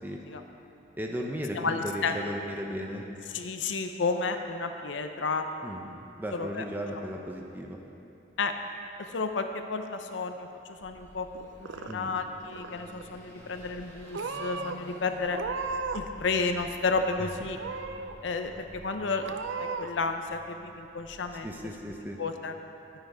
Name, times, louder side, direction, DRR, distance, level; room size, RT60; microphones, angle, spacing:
voice 1, 1.0-3.1 5.6-5.8 6.2-7.8 11.9-12.1 17.2-17.3 21.4-22.2, equal, 10° right, 0 dB, 0.8 m, -36 dB
voice 2, 1.5-2.2 3.3-5.5 5.8-6.0 6.3-6.6 8.4-8.5 9.0-15.4 15.9-17.6 18.2-21.5 22.2-22.6, left 4 dB, 90° left, 7 dB, 0.6 m, -32 dB
Car passing by / Accelerating revving vroom, 10.8-22.0, equal, 15° left, 1.4 m, -51 dB
Purr / Meow, 11.3-12.2 12.5-13.1 13.7-13.9 14.1-14.8 15.3-16.1 16.4-17.1 17.6-18.2 18.6-18.7 19.2-19.9, right 4 dB, 90° right, 0.5 m, -36 dB
11.5 x 9.2 x 5.0 m, 2.8 s
head